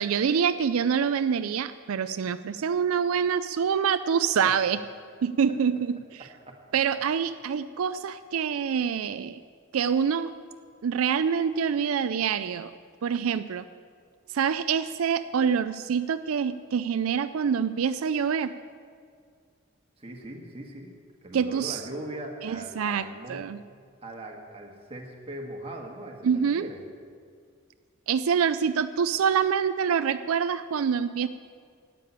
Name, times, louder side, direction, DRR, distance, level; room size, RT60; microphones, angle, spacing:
voice 1, 0.0-4.8 5.2-6.2 6.7-9.4 9.7-10.3 10.8-12.7 13.0-13.7 14.3-18.5 21.3-21.8 22.4-23.6 26.2-26.6 28.1-31.3, right 7 dB, 85° right, 12 dB, 0.4 m, -26 dB
voice 2, 6.2-6.6 20.0-23.5 24.0-26.8, right 1 dB, 25° right, 1 dB, 1.6 m, -40 dB
12.5 x 8.5 x 8.6 m, 2.1 s
head